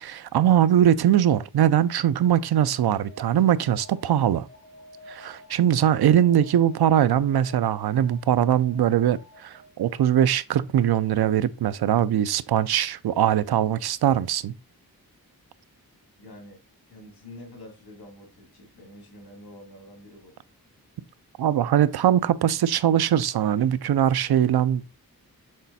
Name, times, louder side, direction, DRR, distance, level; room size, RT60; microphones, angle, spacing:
voice 1, 0.0-4.5 5.1-14.5 21.4-24.9, right 10 dB, 85° right, 0.5 m, -21 dB
Alarm, 2.7-9.8, left 1 dB, 30° left, 1.4 m, -49 dB
voice 2, 16.2-16.6 16.9-20.3, left 1 dB, 80° left, 3.2 m, -46 dB
6.6 x 4.1 x 4.1 m
wide cardioid pair, 140°, 37 cm